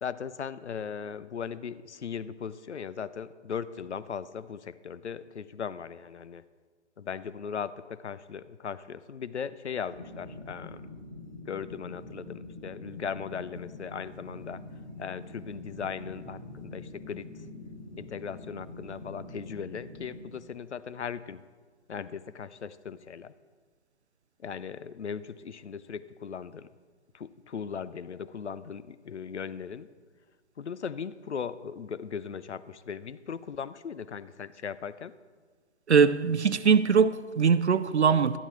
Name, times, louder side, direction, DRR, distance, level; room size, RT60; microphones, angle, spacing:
voice 1, 0.0-6.4 7.0-10.8 11.5-14.6 15.0-17.3 18.0-21.4 21.9-23.3 24.4-26.7 27.1-29.9 30.6-35.1, left 7 dB, 70° left, 0.5 m, -38 dB
sound 1, 9.9-20.2, left 2 dB, 30° right, 1.2 m, -45 dB
voice 2, 35.9-38.4, right 6 dB, 65° right, 0.5 m, -22 dB
12.0 x 12.0 x 3.1 m
figure-of-eight pair, 150°, 36 cm